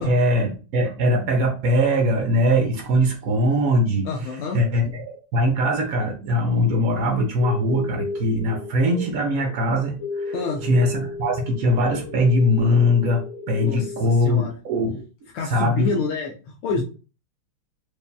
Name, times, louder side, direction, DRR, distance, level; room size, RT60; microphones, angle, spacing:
voice 1, 0.0-4.1 4.5-10.3 10.6-15.1 15.4-15.9, equal, 70° right, 2 dB, 0.8 m, -21 dB
voice 2, 4.1-4.6 10.3-10.6 13.6-13.9 14.2-14.5 15.3-16.3 16.6-16.8, left 4 dB, 80° left, -1 dB, 1.5 m, -27 dB
sound 1, 7.4-14.0, left 4 dB, 40° left, 1.4 m, -34 dB
4.8 x 2.7 x 2.2 m, 0.35 s
omnidirectional pair, 2.3 m